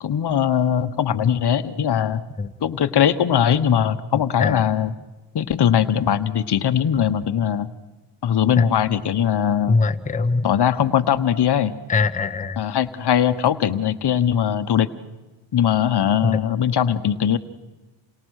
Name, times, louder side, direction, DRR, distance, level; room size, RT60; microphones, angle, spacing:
voice 1, 0.0-2.2 2.6-5.0 5.3-7.7 8.2-9.8 10.4-11.8 12.6-14.9 15.5-17.4, left 9 dB, 50° left, 10 dB, 1.2 m, -20 dB
voice 2, 9.7-10.5 11.9-12.6, left 3 dB, 15° left, 7 dB, 1.0 m, -21 dB
29.0 x 28.5 x 6.5 m, 1.2 s
cardioid pair, 85°, 50 cm